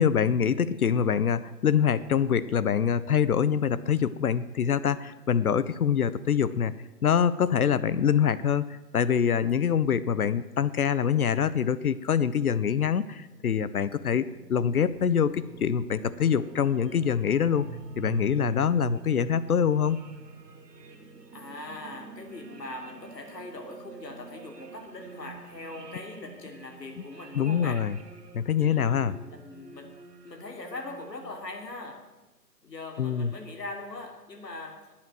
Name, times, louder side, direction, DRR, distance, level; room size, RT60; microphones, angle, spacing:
voice 1, 0.0-6.7 7.0-17.6 18.0-20.0 27.3-27.9 28.3-29.2 33.0-33.3, left 8 dB, 65° left, 16 dB, 0.7 m, -25 dB
sound 1, 13.2-31.5, right 4 dB, 80° right, 2.1 m, -45 dB
voice 2, 21.3-27.8 28.6-29.9 30.2-32.0 32.6-34.9, left 2 dB, 85° left, 3 dB, 3.3 m, -41 dB
14.0 x 8.8 x 7.7 m, 1.1 s
hypercardioid pair, 165°, 48 cm